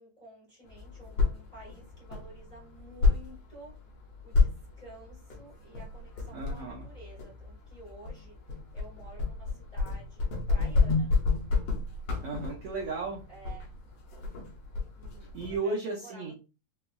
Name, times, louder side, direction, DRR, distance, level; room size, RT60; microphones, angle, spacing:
voice 1, 0.0-3.7 4.2-8.4 8.7-11.1 13.3-13.7 14.9-16.4, right 1 dB, 45° left, -7 dB, 0.5 m, -51 dB
sound 1, 0.6-15.6, left 4 dB, 70° left, 1.7 m, -31 dB
voice 2, 6.3-6.9 12.2-13.2 15.3-16.3, right 3 dB, 80° right, -1 dB, 1.3 m, -34 dB
5.7 x 2.0 x 2.2 m, 0.31 s
omnidirectional pair, 3.7 m